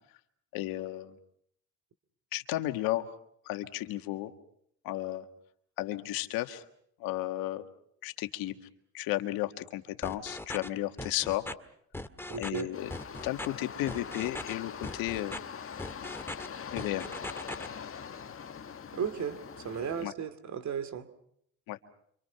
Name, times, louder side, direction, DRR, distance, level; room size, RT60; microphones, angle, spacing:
voice 1, 0.5-1.1 2.3-3.1 3.4-4.3 4.8-5.2 5.8-6.6 7.0-7.7 8.0-8.5 8.9-11.5 12.4-12.9 13.2-15.4 16.7-17.1 20.0-20.1 21.7-21.8, left 15 dB, 80° left, 8 dB, 1.7 m, -33 dB
sound 1, 10.0-10.7 11.0-11.5 11.9-12.6 12.9-13.5 13.9-14.5 14.8-15.4 15.8-16.5 16.8-17.7, left 1 dB, 5° left, 1.8 m, -39 dB
voice 2, 12.3-12.7 18.9-21.1, right 7 dB, 55° right, 11 dB, 2.6 m, -35 dB
sound 2, 12.7-20.1, left 7 dB, 40° left, 1.6 m, -43 dB
28.5 x 25.5 x 5.8 m, 0.69 s
supercardioid pair, 70°, 35 cm